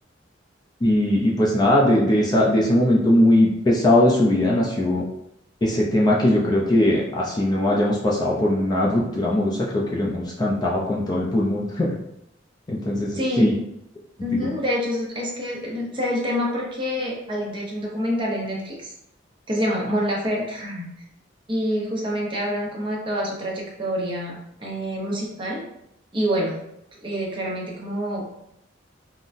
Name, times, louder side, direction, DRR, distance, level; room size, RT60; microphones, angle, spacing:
voice 1, 0.8-5.0 5.6-11.9 12.7-13.5 14.3-14.5, left 1 dB, 20° left, -3 dB, 0.4 m, -20 dB
voice 2, 13.1-13.5 14.2-18.9 19.5-20.9 21.5-25.6 26.1-26.6 27.0-28.2, equal, 25° right, -3 dB, 0.7 m, -26 dB
3.7 x 2.1 x 2.5 m, 0.78 s
head